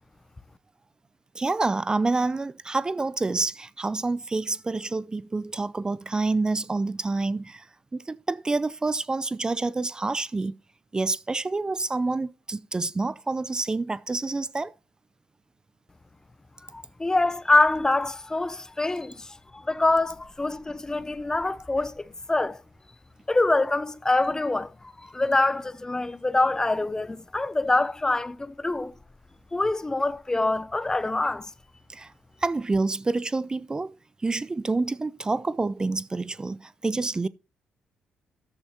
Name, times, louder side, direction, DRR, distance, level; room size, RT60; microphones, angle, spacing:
voice 1, 1.4-7.7 7.9-10.5 10.9-14.7 31.9-32.1 32.4-33.9 34.2-37.3, right 3 dB, 25° right, 0.5 m, -28 dB
voice 2, 16.7-22.6 23.3-28.9 29.5-31.5, left 2 dB, 20° left, 0.7 m, -25 dB
13.5 x 8.8 x 2.9 m
hypercardioid pair, 45°, 3 cm